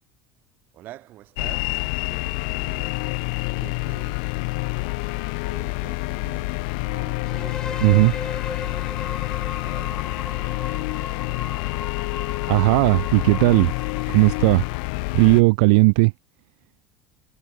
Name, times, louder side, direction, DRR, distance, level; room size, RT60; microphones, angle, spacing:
voice 1, 0.7-12.2 15.2-15.4, right 15 dB, 45° right, 5.0 m, -48 dB
sound 1, 1.4-15.4, left 32 dB, 75° left, 0.4 m, -28 dB
sound 2, 7.2-15.0, left 5 dB, 15° left, 0.7 m, -36 dB
voice 2, 7.8-8.1 12.5-13.7 14.1-14.7 15.1-16.1, right 29 dB, 80° right, 0.5 m, -16 dB
cardioid pair, 165°, 5 cm